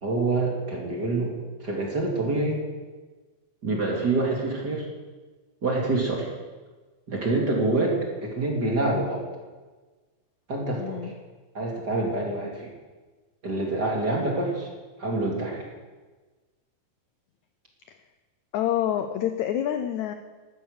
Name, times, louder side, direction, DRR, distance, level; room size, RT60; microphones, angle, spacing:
voice 1, 0.0-2.6 3.6-4.9 5.6-6.3 7.1-9.2 10.5-11.1 11.5-12.7 13.4-14.7 15.0-15.7, right 2 dB, 30° right, -1 dB, 2.5 m, -26 dB
voice 2, 10.7-11.1 17.9-18.0 18.5-20.1, left 10 dB, 80° left, 8 dB, 1.7 m, -27 dB
14.0 x 12.5 x 6.5 m, 1.3 s
omnidirectional pair, 4.1 m